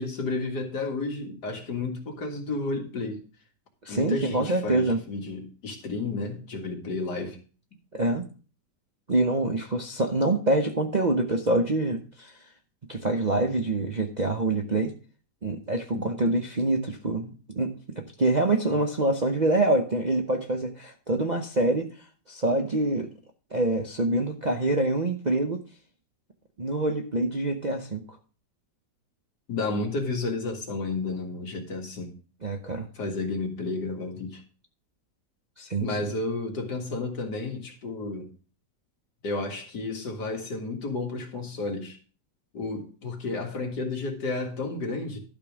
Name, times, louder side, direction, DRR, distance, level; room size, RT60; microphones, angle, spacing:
voice 1, 0.0-3.2 3.9-7.4 13.0-13.1 15.9-16.1 29.5-32.1 32.9-34.4 35.8-38.3 39.2-42.0 42.5-45.2, left 3 dB, 70° left, 2.5 m, -32 dB
voice 2, 3.8-5.0 7.9-8.3 9.1-12.3 12.9-14.9 15.4-21.9 22.3-23.1 23.5-25.6 26.6-28.0 32.4-32.9 35.6-35.9, right 2 dB, 35° right, 0.7 m, -25 dB
12.0 x 5.3 x 6.0 m
omnidirectional pair, 1.9 m